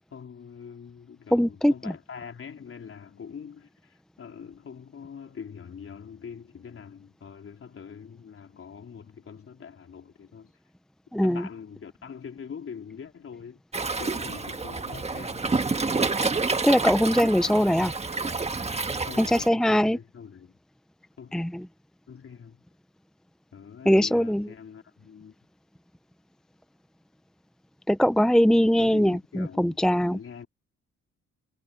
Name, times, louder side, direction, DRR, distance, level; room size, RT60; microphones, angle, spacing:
voice 1, 0.1-10.5 11.2-13.6 14.0-15.5 19.1-20.5 21.2-21.4 22.1-22.6 23.5-25.4 28.8-30.5, left 7 dB, 45° left, 3.9 m, -43 dB
voice 2, 1.3-1.7 11.1-11.4 16.6-17.9 19.2-20.0 21.3-21.6 23.9-24.5 27.9-30.2, equal, ahead, 0.7 m, -21 dB
Waves surf, 13.7-19.5, right 3 dB, 20° right, 1.5 m, -28 dB
cardioid pair, 90°, 30 cm